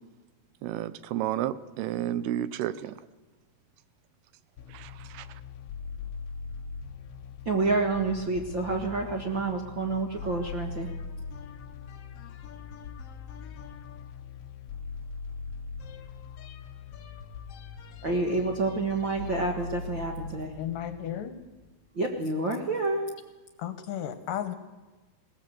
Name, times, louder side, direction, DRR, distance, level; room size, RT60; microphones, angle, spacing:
voice 1, 0.6-3.0 4.7-5.4, right 12 dB, 80° right, 15 dB, 2.8 m, -32 dB
sound 1, 4.6-21.9, left 5 dB, 90° left, 1.3 m, -41 dB
voice 2, 7.4-10.9 18.0-20.5 21.9-23.0, right 3 dB, 55° right, 3 dB, 1.4 m, -28 dB
voice 3, 20.6-21.4 23.6-24.6, left 10 dB, 70° left, 10 dB, 2.4 m, -34 dB
21.0 x 18.0 x 7.7 m, 1.2 s
omnidirectional pair, 4.5 m